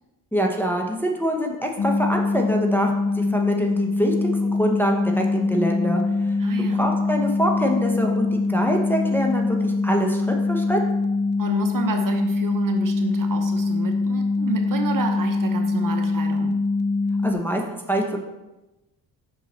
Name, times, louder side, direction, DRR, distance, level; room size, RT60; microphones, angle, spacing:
voice 1, 0.3-10.8 17.2-18.2, equal, 5° left, 1 dB, 0.9 m, -25 dB
sound 1, 1.8-17.3, left 3 dB, 25° left, 0.5 m, -23 dB
voice 2, 6.4-6.9 11.4-16.6, right 4 dB, 45° right, 4 dB, 0.9 m, -30 dB
5.6 x 4.6 x 4.1 m, 1.0 s
cardioid pair, 70°, 46 cm